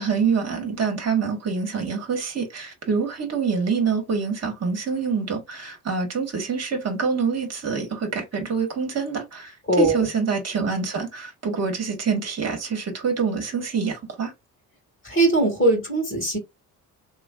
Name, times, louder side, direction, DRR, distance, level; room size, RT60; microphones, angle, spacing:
voice 1, 0.0-14.3, right 5 dB, 35° right, 1.8 m, -26 dB
voice 2, 9.7-10.1 15.0-16.4, right 2 dB, 25° left, 2.5 m, -20 dB
3.4 x 3.1 x 2.5 m
figure-of-eight pair, 45°, 45 cm